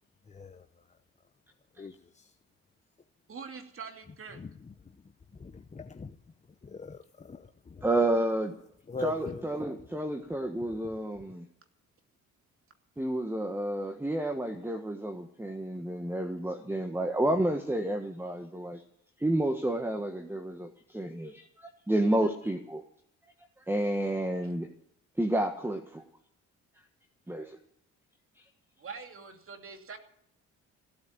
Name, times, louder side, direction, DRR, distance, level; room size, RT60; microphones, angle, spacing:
voice 1, 0.3-0.6 1.8-2.3 4.3-4.5 5.4-6.2 6.6-7.9 8.9-9.4, left 4 dB, 25° left, 9 dB, 0.8 m, -41 dB
voice 2, 3.3-4.4 28.8-30.0, right 5 dB, 45° right, 5 dB, 2.7 m, -44 dB
voice 3, 7.8-8.5 9.0-11.5 13.0-18.8 19.2-22.8 23.6-24.7 25.2-26.0 27.3-27.6, right 1 dB, 5° right, 6 dB, 1.4 m, -30 dB
16.5 x 8.7 x 8.7 m, 0.74 s
cardioid pair, 90°, 30 cm